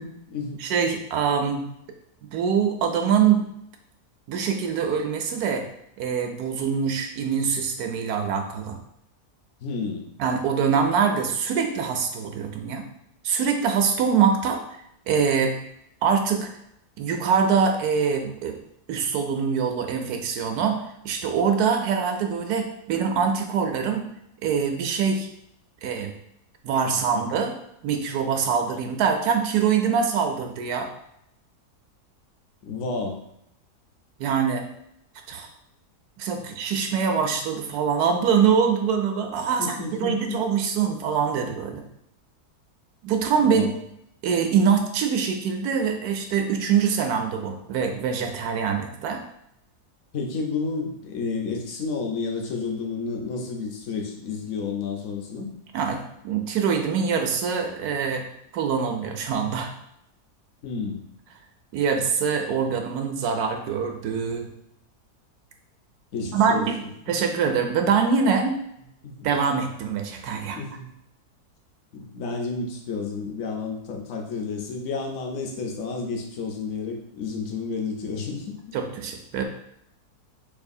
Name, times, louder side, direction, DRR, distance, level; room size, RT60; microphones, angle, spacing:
voice 1, 0.0-0.6 9.6-10.1 26.9-27.2 32.6-33.2 39.6-40.4 43.4-43.7 50.1-55.5 60.6-61.0 66.1-66.7 67.1-67.2 69.0-69.3 70.5-70.9 71.9-78.5, left 4 dB, 60° left, 2 dB, 0.9 m, -31 dB
voice 2, 0.6-1.6 2.2-3.4 4.3-5.7 6.0-8.8 10.2-12.9 13.2-14.6 15.1-15.6 16.0-16.5 17.0-18.6 18.9-24.1 24.4-25.3 25.8-26.1 26.6-27.5 27.8-30.9 34.2-34.6 35.3-35.5 36.2-41.8 43.0-43.6 44.2-49.2 55.7-58.3 58.5-59.7 61.7-64.5 66.3-66.8 67.1-68.6 69.2-70.6 78.7-79.4, right 6 dB, 80° right, 4 dB, 1.1 m, -24 dB
4.8 x 2.5 x 2.6 m, 0.76 s
omnidirectional pair, 1.7 m